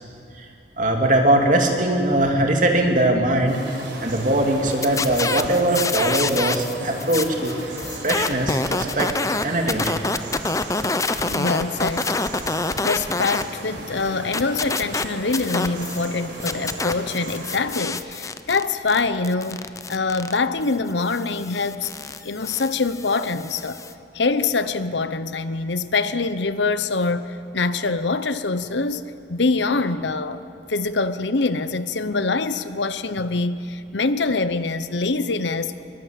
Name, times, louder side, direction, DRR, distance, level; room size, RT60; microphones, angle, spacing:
voice 1, 0.8-3.6 4.0-7.5 8.0-9.1 9.4-9.9, right 1 dB, 45° right, 2 dB, 2.8 m, -21 dB
sound 1, 3.5-17.7, right 1 dB, 80° right, 5.9 m, -36 dB
sound 2, 4.7-6.7 7.0-13.4 13.8-16.1 16.4-23.9, left 3 dB, 15° left, 0.7 m, -27 dB
voice 2, 11.2-12.2 12.8-21.9 22.2-23.8 24.1-30.4 30.7-35.8, left 3 dB, 75° left, 12 dB, 0.9 m, -24 dB
23.0 x 23.0 x 8.4 m, 2.6 s
head